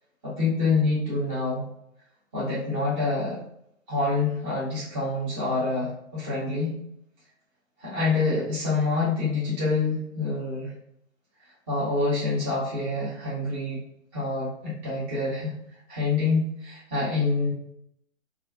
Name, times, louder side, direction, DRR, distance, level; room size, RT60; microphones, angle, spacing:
voice 1, 0.2-1.7 2.3-3.4 3.9-6.8 7.8-10.7 11.7-13.8 14.1-15.6 15.9-17.5, left 3 dB, 15° right, -8 dB, 0.6 m, -26 dB
2.3 x 2.1 x 3.5 m, 0.75 s
hypercardioid pair, 150°, 40 cm